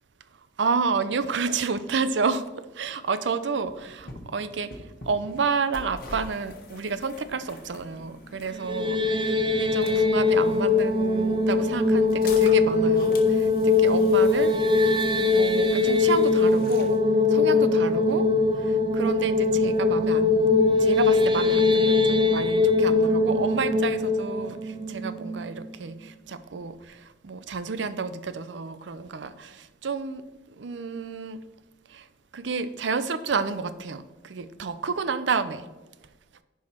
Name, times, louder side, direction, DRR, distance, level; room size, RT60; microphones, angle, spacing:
voice 1, 0.6-2.5 2.7-4.7 5.0-15.0 15.3-17.0 17.3-18.3 18.5-20.5 20.8-30.2 30.6-31.4 31.9-32.1 32.3-35.6, right 5 dB, 80° right, 13 dB, 0.6 m, -30 dB
sound 1, 3.6-17.0, left 2 dB, 50° left, 1.3 m, -45 dB
sound 2, 8.5-25.6, left 3 dB, 25° right, 0.6 m, -21 dB
10.5 x 4.7 x 4.3 m, 1.2 s
head